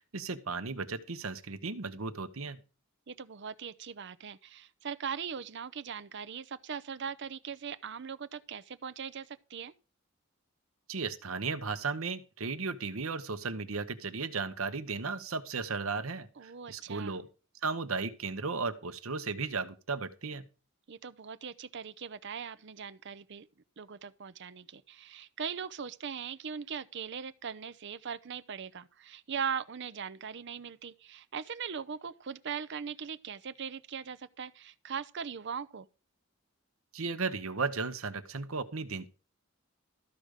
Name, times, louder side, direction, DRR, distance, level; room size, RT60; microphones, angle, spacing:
voice 1, 0.1-2.6 10.9-17.3 17.6-20.4 36.9-39.1, right 4 dB, 85° right, 1.0 m, -35 dB
voice 2, 3.1-9.7 16.4-17.2 20.9-23.5 23.8-35.9, right 7 dB, 60° right, 0.6 m, -40 dB
13.5 x 5.1 x 6.5 m
head